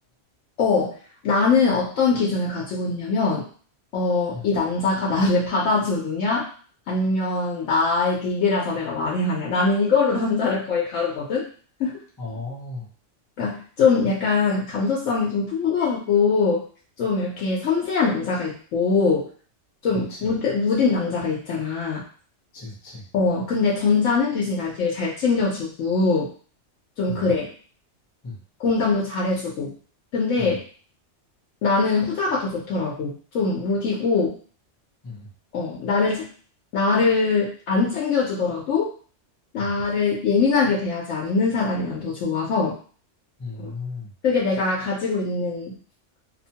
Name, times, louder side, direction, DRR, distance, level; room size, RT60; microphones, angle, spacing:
voice 1, 0.6-0.9 1.2-3.5 3.9-6.5 6.9-11.5 11.8-12.0 13.4-16.6 17.0-19.3 19.8-22.0 23.1-26.3 27.0-27.5 28.6-29.7 30.1-30.6 31.6-34.4 35.5-36.3 36.7-38.9 39.5-42.8 43.6-43.7 44.2-45.7, left 4 dB, 85° left, -4 dB, 1.0 m, -22 dB
voice 2, 12.2-12.9 19.9-20.3 22.5-23.1 27.1-27.3 28.2-28.4 30.4-30.6 35.0-35.3 39.6-39.7 43.4-44.1, left 3 dB, 25° left, -4 dB, 0.5 m, -35 dB
2.7 x 2.1 x 2.7 m, 0.43 s
omnidirectional pair, 1.3 m